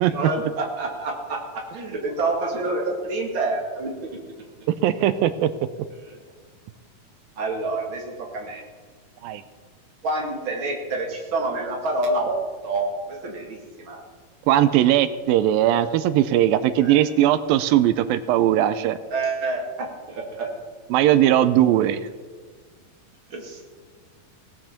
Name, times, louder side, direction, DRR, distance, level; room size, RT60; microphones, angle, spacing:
voice 1, 0.0-4.2 6.1-6.2 7.4-8.6 10.0-14.0 16.8-17.0 19.1-20.5 23.3-23.6, right 2 dB, 40° right, 1 dB, 2.6 m, -28 dB
voice 2, 4.8-5.5 9.2-9.4 14.5-19.0 20.9-22.0, right 12 dB, 85° right, 13 dB, 2.4 m, -19 dB
17.5 x 7.8 x 7.2 m, 1.5 s
omnidirectional pair, 4.2 m